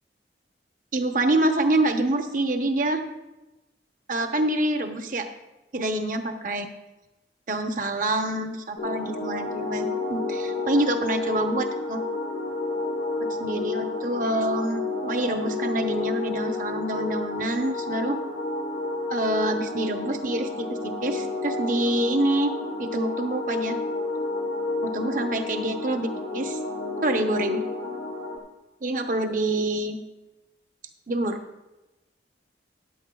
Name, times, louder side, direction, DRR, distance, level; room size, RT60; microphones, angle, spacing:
voice 1, 0.9-3.0 4.1-5.3 5.7-6.6 7.5-12.0 13.2-18.2 19.1-22.5 22.8-23.8 24.8-26.6 27.0-27.6 28.8-30.0 31.1-31.4, right 1 dB, 45° right, 5 dB, 0.8 m, -26 dB
sound 1, 8.8-28.4, left 3 dB, 75° left, 1.6 m, -30 dB
14.5 x 10.5 x 2.3 m, 1.0 s
head